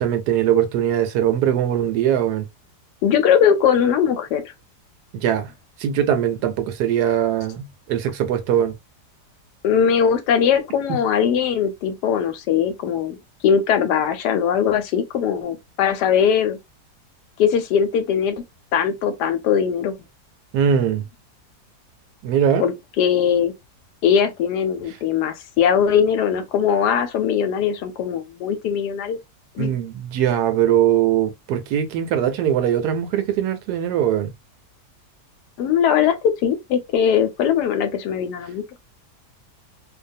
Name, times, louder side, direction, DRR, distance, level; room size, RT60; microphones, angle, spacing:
voice 1, 0.0-2.5 5.1-5.5 5.8-8.7 20.5-21.0 22.2-22.6 29.6-34.3, right 9 dB, 75° right, 1.1 m, -21 dB
voice 2, 3.0-4.5 9.6-13.2 13.4-16.6 17.4-18.4 18.7-20.0 22.6-23.5 24.0-29.2 29.6-29.7 35.6-38.6, left 8 dB, 80° left, 1.1 m, -20 dB
2.6 x 2.2 x 2.5 m
omnidirectional pair, 1.8 m